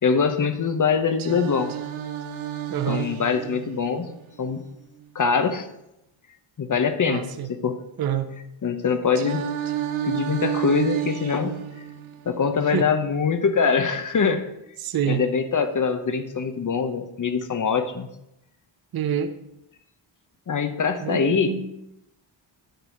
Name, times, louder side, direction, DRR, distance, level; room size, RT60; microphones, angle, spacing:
voice 1, 0.0-1.7 2.9-4.1 4.4-4.6 5.1-5.7 6.6-7.8 8.6-9.4 10.0-11.7 12.2-14.5 15.1-18.1 20.5-21.6, left 5 dB, 40° left, 9 dB, 0.9 m, -23 dB
Singing, 1.2-5.2 9.2-13.2, right 10 dB, 75° right, 1.0 m, -32 dB
voice 2, 2.7-3.1 7.0-7.5 8.0-8.3 12.6-12.9 14.8-15.2 18.9-19.3 21.0-21.7, right 9 dB, 50° right, 8 dB, 0.7 m, -27 dB
10.5 x 4.1 x 7.4 m, 0.87 s
wide cardioid pair, 125°, 48 cm